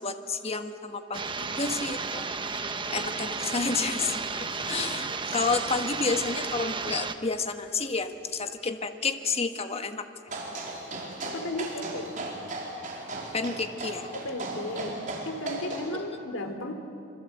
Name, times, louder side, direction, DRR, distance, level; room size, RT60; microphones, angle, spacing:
voice 1, 0.0-2.3 2.9-10.7 13.3-14.1, left 4 dB, 30° left, 7 dB, 1.4 m, -31 dB
sound 1, 1.1-7.1, right 4 dB, 25° right, 1.1 m, -33 dB
sound 2, 2.5-3.3 3.7-4.9 5.3-5.7 7.1-7.2 8.5-8.6, right 4 dB, 85° right, 7.8 m, -46 dB
sound 3, 10.3-15.9, right 2 dB, 40° right, 4.8 m, -37 dB
voice 2, 11.2-12.1 14.1-16.7, left 1 dB, 90° left, 6 dB, 3.2 m, -34 dB
26.5 x 25.0 x 8.3 m, 2.6 s
head